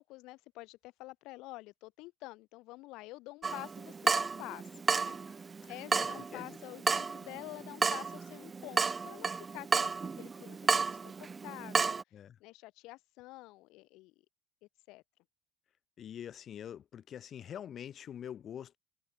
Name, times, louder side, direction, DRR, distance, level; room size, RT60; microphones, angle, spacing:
voice 1, 0.0-9.9 10.2-12.0 12.4-14.1 14.9-15.0, left 21 dB, 65° left, 1.2 m, -48 dB
Water tap faucet / Drip, 3.4-12.0, right 5 dB, 20° right, 0.6 m, -33 dB
voice 2, 5.9-6.6 12.1-12.4 16.0-18.8, left 9 dB, 40° left, 2.0 m, -45 dB
cardioid pair, 125°, 0 cm